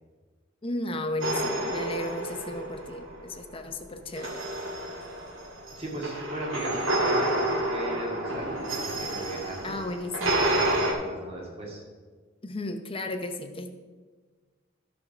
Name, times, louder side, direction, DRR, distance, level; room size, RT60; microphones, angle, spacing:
voice 1, 0.6-4.4 9.6-10.5 12.4-13.7, left 2 dB, 30° left, 6 dB, 0.8 m, -34 dB
sound 1, 1.2-3.2 4.1-10.9, right 1 dB, 85° right, 1.9 m, -29 dB
voice 2, 5.8-8.5 8.7-9.8 10.6-11.8, right 1 dB, 30° right, -3 dB, 2.3 m, -37 dB
13.0 x 4.7 x 6.1 m, 1.4 s
head